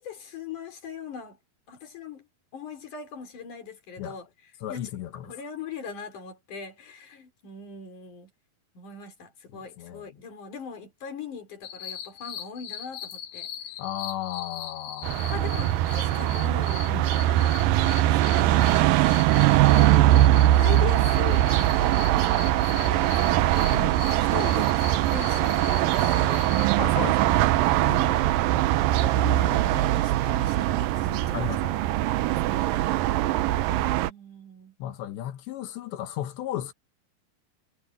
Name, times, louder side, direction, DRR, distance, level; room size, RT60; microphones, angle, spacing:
voice 1, 0.0-1.4 1.7-2.3 2.5-4.3 4.7-8.3 8.8-13.5 15.3-16.8 17.3-17.5 18.1-18.8 20.5-23.5 24.2-24.8 25.1-26.5 27.8-28.6 29.0-31.5 32.0-33.0 34.0-34.7, left 6 dB, 45° left, 5.7 m, -40 dB
voice 2, 4.6-5.3 9.5-10.0 13.8-15.3 16.9-17.0 23.7-24.0 26.8-27.4 31.3-31.8 34.8-36.7, left 12 dB, 90° left, 3.6 m, -34 dB
sound 1, 11.6-26.7, left 9 dB, 65° left, 3.2 m, -40 dB
sound 2, 15.0-34.1, right 14 dB, 85° right, 2.0 m, -22 dB
omnidirectional pair, 4.9 m